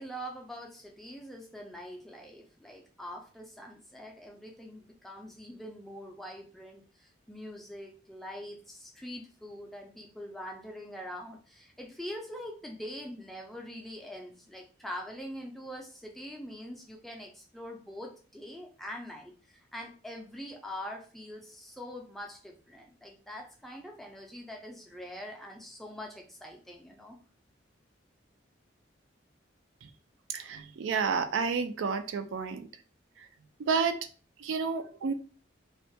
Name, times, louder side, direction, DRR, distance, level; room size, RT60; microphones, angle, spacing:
voice 1, 0.0-27.2, equal, ahead, 0 dB, 0.3 m, -44 dB
voice 2, 30.3-32.7 33.2-33.3 33.6-34.0 34.4-35.1, right 5 dB, 80° right, 9 dB, 0.3 m, -30 dB
2.3 x 2.1 x 2.6 m, 0.38 s
head